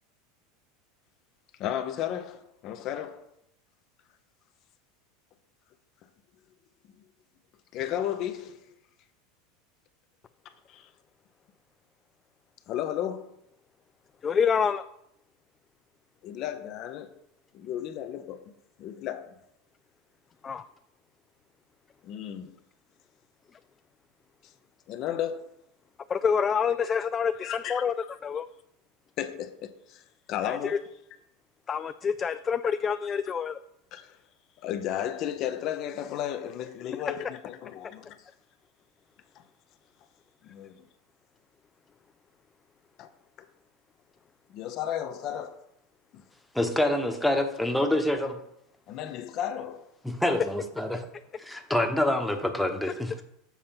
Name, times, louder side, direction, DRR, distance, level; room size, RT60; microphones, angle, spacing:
voice 1, 1.6-3.2 7.7-8.5 12.7-13.3 16.2-17.1 17.5-18.4 18.8-19.3 22.1-22.5 24.9-25.4 27.4-27.7 29.2-29.7 30.3-30.7 33.9-34.0 34.6-38.1 40.5-40.7 43.0-43.1 44.5-45.6 48.9-49.8, left 10 dB, 50° left, 0.7 m, -33 dB
voice 2, 14.2-14.8 20.4-20.6 26.1-27.9 28.2-28.5 30.4-30.8 31.7-33.6, left 6 dB, 30° left, 0.3 m, -27 dB
voice 3, 46.5-48.4 50.0-51.0 51.4-53.2, left 1 dB, 5° left, 1.1 m, -26 dB
7.2 x 4.2 x 5.8 m
hypercardioid pair, 90°, 0 cm